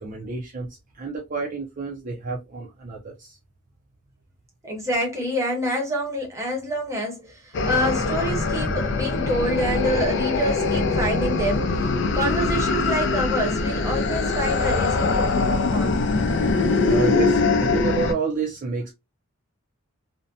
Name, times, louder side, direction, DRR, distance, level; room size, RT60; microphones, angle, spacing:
voice 1, 0.0-3.4 16.8-18.9, right 5 dB, 40° right, 0.4 m, -29 dB
voice 2, 4.6-11.9 12.1-16.0, equal, 15° right, 0.8 m, -27 dB
sound 1, 7.5-18.1, left 3 dB, 55° left, 0.4 m, -22 dB
2.5 x 2.1 x 2.5 m
head